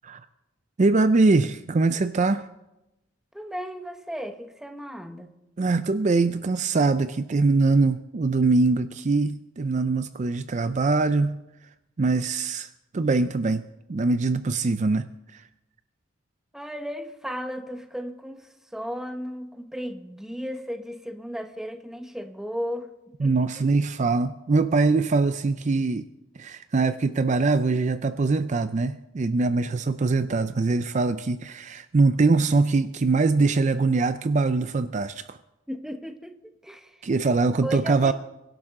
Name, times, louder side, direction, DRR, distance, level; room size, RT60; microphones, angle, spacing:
voice 1, 0.8-2.5 5.6-11.4 12.0-13.6 13.9-15.4 23.2-26.0 26.4-35.4 37.0-38.1, right 3 dB, 35° right, 12 dB, 0.4 m, -23 dB
voice 2, 3.3-5.3 16.5-22.9 23.2-23.7 35.7-37.0 37.6-38.1, equal, ahead, 7 dB, 0.9 m, -35 dB
23.5 x 12.0 x 3.7 m, 0.95 s
head